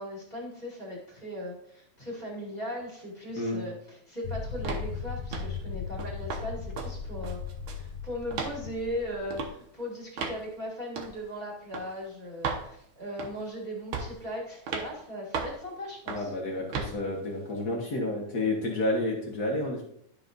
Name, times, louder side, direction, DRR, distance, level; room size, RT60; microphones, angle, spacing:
voice 1, 0.0-7.4 7.7-16.3, equal, 15° left, -3 dB, 2.0 m, -38 dB
sound 1, 4.2-9.5, left 5 dB, 80° left, 1.8 m, -37 dB
sound 2, 4.6-4.9 5.3-5.6 6.0-6.4 6.8-6.9 7.2-7.9 8.3-8.6 9.3-9.5 10.2-10.4 11.0-11.1 11.7-11.9 12.4-12.7 13.2-13.5 13.9-14.2 14.7-14.9 15.3-15.6 16.1-16.3 16.7-16.9, right 5 dB, 75° right, 1.2 m, -34 dB
voice 2, 16.1-19.9, left 2 dB, 55° left, -1 dB, 1.1 m, -30 dB
11.5 x 5.8 x 2.6 m, 0.71 s
omnidirectional pair, 3.6 m